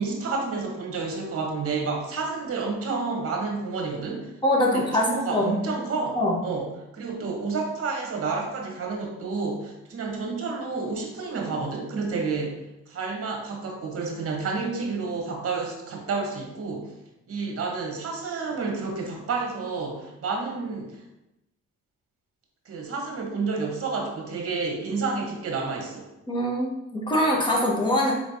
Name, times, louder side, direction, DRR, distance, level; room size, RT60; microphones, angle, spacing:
voice 1, 0.0-4.3 4.6-12.6 12.9-16.9 17.3-21.0 22.6-26.0, right 4 dB, 50° right, 1 dB, 1.1 m, -30 dB
voice 2, 4.4-5.6 6.2-6.4 26.3-28.1, left 1 dB, 15° left, -2 dB, 1.1 m, -23 dB
4.7 x 3.2 x 2.7 m, 0.92 s
cardioid pair, 90°, 30 cm